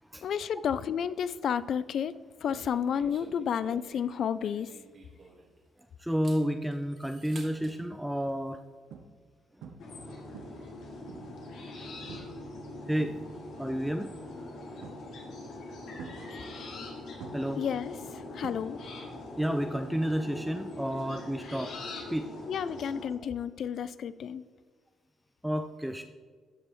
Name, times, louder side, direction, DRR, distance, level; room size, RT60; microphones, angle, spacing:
voice 1, 0.2-2.1 2.4-4.7 17.6-17.9 18.3-18.8 22.5-24.4, left 8 dB, 65° left, 16 dB, 0.3 m, -31 dB
sound 1, 2.4-5.7 6.1-7.8, right 3 dB, 50° right, 1.6 m, -52 dB
voice 2, 6.0-8.6 12.9-13.1 13.6-14.1 17.3-17.7 19.4-21.7 22.1-22.3 25.4-26.0, equal, 5° right, 7 dB, 0.4 m, -30 dB
sound 2, 8.3-8.4 8.9-9.3 9.6-10.0 10.3-11.5 12.1-12.4 12.8-13.6 14.8-15.3 16.0-16.9 17.2-19.1 19.3-19.8 21.8-21.9, right 6 dB, 85° right, 0.7 m, -48 dB
sound 3, 9.8-23.1, left 2 dB, 85° left, 2.0 m, -42 dB
13.0 x 5.4 x 3.0 m, 1.5 s
cardioid pair, 90°, 0 cm